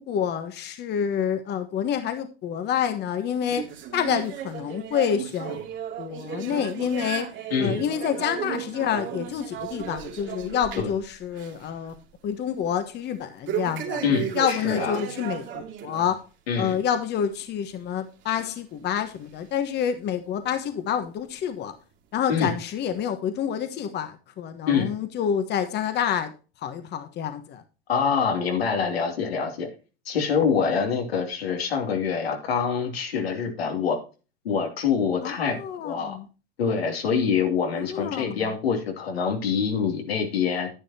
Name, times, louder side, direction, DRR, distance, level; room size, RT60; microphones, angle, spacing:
voice 1, 0.0-5.6 6.0-11.9 12.2-14.0 14.3-16.2 16.6-21.7 22.1-26.3 26.6-27.6 35.2-36.3 37.7-38.6, left 8 dB, 35° left, 9 dB, 1.3 m, -28 dB
sound 1, 3.5-11.0 11.3-11.7 12.0-12.1 13.5-16.1 16.5-16.7 17.4-17.5 18.4-18.5 19.3-19.4, right 9 dB, 40° right, 2.4 m, -34 dB
voice 2, 7.5-7.8 10.8-10.9 14.0-15.0 16.5-16.8 22.3-22.5 24.7-24.9 27.9-29.7 30.1-34.0 34.4-36.2 36.6-40.7, left 6 dB, 85° left, 3 dB, 2.8 m, -25 dB
10.5 x 9.9 x 2.8 m, 0.33 s
hypercardioid pair, 110°, 30 cm